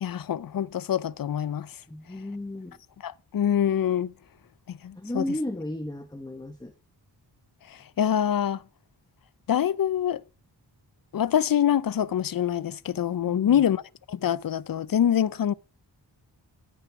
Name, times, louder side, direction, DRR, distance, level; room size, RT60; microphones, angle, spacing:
voice 1, 0.0-1.7 3.0-4.1 4.7-5.2 7.7-8.6 9.5-10.2 11.1-13.8 14.1-15.5, left 9 dB, 50° left, 0.5 m, -25 dB
voice 2, 1.9-2.8 4.9-6.7 13.3-13.6, left 1 dB, 10° left, 1.0 m, -34 dB
13.0 x 9.4 x 4.7 m
wide cardioid pair, 85°, 43 cm